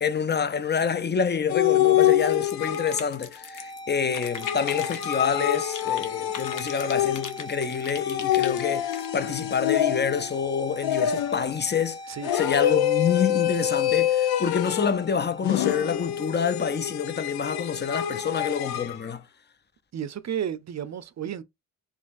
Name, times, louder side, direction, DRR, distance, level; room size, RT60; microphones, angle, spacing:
voice 1, 0.0-12.0 12.3-19.2, left 6 dB, 30° left, 0.6 m, -27 dB
sound 1, 1.5-3.2 4.4-7.5 8.0-10.3 10.8-11.5 12.2-15.0 15.4-19.0, left 11 dB, 90° left, 0.6 m, -26 dB
sound 2, 2.2-3.8 4.1-6.1 6.3-9.1, left 7 dB, 55° left, 1.1 m, -39 dB
sound 3, 3.4-17.3, equal, 15° left, 1.1 m, -41 dB
voice 2, 19.9-21.4, right 9 dB, 50° right, 0.6 m, -32 dB
4.0 x 2.9 x 2.6 m
cardioid pair, 65°, 36 cm